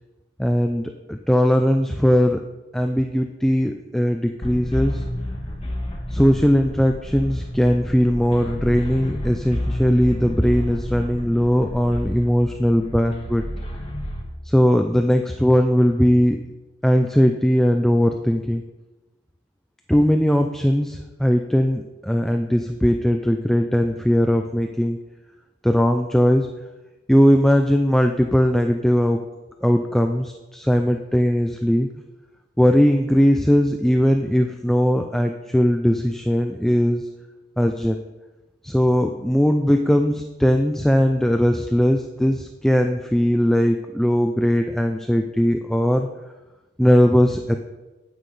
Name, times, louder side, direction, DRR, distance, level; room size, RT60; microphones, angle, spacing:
voice 1, 0.4-2.4 2.7-5.0 6.1-13.5 14.5-16.4 16.8-18.6 19.9-25.0 25.6-26.5 27.1-29.2 29.6-31.9 32.6-37.1 37.6-38.0 38.6-46.1 46.8-47.6, equal, ahead, 5 dB, 0.3 m, -19 dB
sound 1, 4.4-14.2, left 1 dB, 30° left, 1.3 m, -30 dB
9.2 x 8.6 x 3.2 m, 1.1 s
head